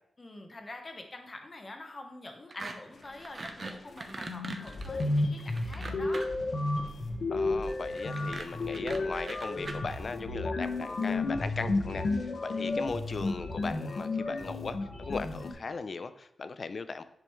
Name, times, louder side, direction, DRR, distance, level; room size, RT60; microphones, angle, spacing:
voice 1, 0.2-6.2, left 2 dB, 30° left, 4 dB, 1.1 m, -45 dB
sound 1, 2.5-2.7 3.0-6.5 7.9-9.8, right 3 dB, 40° right, 0.7 m, -40 dB
sound 2, 3.9-4.0 4.3-15.5, left 2 dB, 60° left, 1.2 m, -32 dB
voice 2, 7.3-17.0, left 4 dB, 45° left, 11 dB, 0.4 m, -38 dB
10.0 x 5.1 x 3.1 m, 0.80 s
wide cardioid pair, 145°, 0 cm